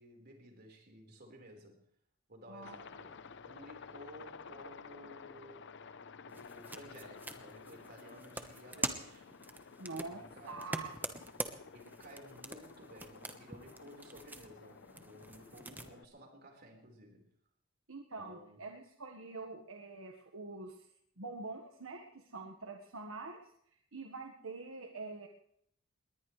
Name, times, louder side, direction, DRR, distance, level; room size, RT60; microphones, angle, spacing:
voice 1, 0.0-1.8 2.3-5.9 6.2-9.3 9.9-10.8 11.7-17.3 18.2-18.6, equal, 50° right, 1 dB, 4.6 m, -55 dB
Aircraft, 2.6-16.1, left 5 dB, 60° left, 0.7 m, -53 dB
sound 1, 6.3-15.9, right 2 dB, 10° right, 1.2 m, -45 dB
voice 2, 9.8-10.9 17.9-20.9 21.2-23.5 23.9-25.3, right 3 dB, 80° right, 3 dB, 1.5 m, -45 dB
21.0 x 19.0 x 3.3 m, 0.68 s
head